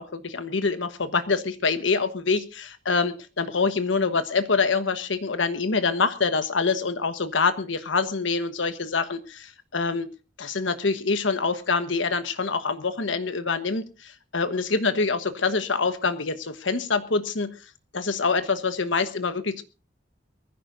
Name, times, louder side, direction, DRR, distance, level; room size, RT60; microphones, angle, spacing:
voice 1, 0.0-10.1 10.4-17.5 17.9-19.6, left 4 dB, 80° left, 10 dB, 1.2 m, -25 dB
23.0 x 15.0 x 2.7 m, 0.31 s
head